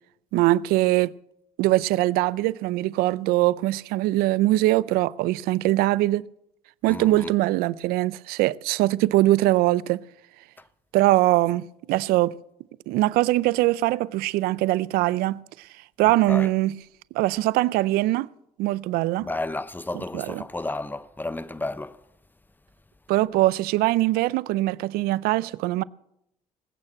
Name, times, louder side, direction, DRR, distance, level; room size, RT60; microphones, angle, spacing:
voice 1, 0.3-1.1 1.6-6.3 6.8-10.0 10.9-12.3 12.9-15.4 16.0-16.8 17.1-18.3 18.6-19.3 20.1-20.4 23.1-25.8, right 17 dB, 80° right, 0.5 m, -22 dB
voice 2, 6.9-7.3 16.3-16.5 19.2-22.0, left 2 dB, 10° left, 1.0 m, -32 dB
20.0 x 8.8 x 7.5 m
supercardioid pair, 65°, 16 cm